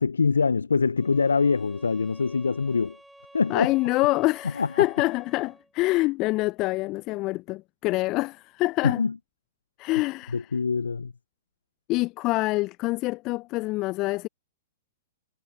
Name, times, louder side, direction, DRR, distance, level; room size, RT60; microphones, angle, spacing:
voice 1, 0.0-3.0 3.3-3.7 4.6-4.7 8.8-9.1 10.3-11.1, left 5 dB, 80° left, 0.6 m, -24 dB
sound 1, 1.0-5.7, right 1 dB, 5° right, 6.2 m, -52 dB
voice 2, 3.5-9.0 9.8-10.5 11.9-14.3, left 20 dB, 35° left, 0.5 m, -26 dB
figure-of-eight pair, 110°, 0 cm